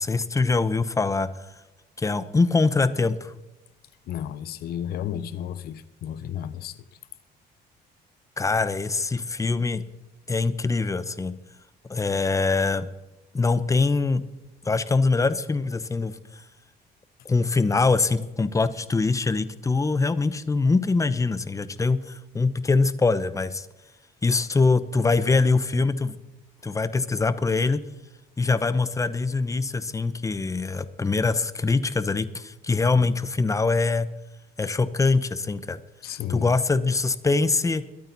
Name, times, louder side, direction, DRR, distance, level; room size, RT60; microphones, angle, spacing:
voice 1, 0.0-1.5 2.0-3.3 8.4-9.8 10.3-11.3 11.9-12.9 13.3-14.2 14.6-16.4 17.2-23.7 24.2-26.2 26.6-27.8 28.4-34.1 34.6-35.8 36.3-37.8, left 3 dB, 20° left, 0.9 m, -23 dB
voice 2, 4.1-6.8 36.0-36.5, left 10 dB, 65° left, 1.0 m, -32 dB
22.0 x 9.0 x 4.1 m
cardioid pair, 110°, 17 cm